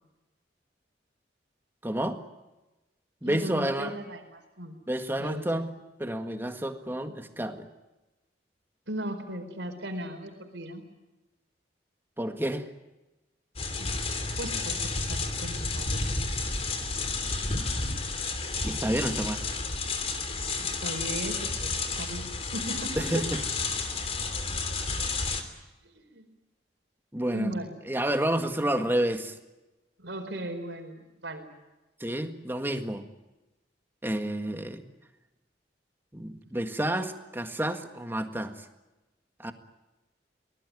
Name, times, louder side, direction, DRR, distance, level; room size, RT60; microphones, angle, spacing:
voice 1, 1.8-2.2 3.2-3.9 4.9-5.7 6.0-7.7 12.2-12.7 18.6-19.4 23.0-23.4 27.1-27.5 27.9-29.4 32.0-33.0 34.0-34.9 36.1-38.6 39.4-39.5, right 1 dB, 10° right, 6 dB, 1.8 m, -29 dB
voice 2, 3.2-4.8 5.2-5.5 8.9-10.8 13.8-13.9 14.4-16.1 20.6-21.7 22.0-22.2 22.5-23.2 25.8-26.2 27.3-27.8 30.0-31.5, right 1 dB, 85° right, 5 dB, 4.5 m, -37 dB
sound 1, 13.6-25.4, left 3 dB, 35° left, 3.0 m, -31 dB
24.5 x 19.5 x 9.6 m, 1.1 s
head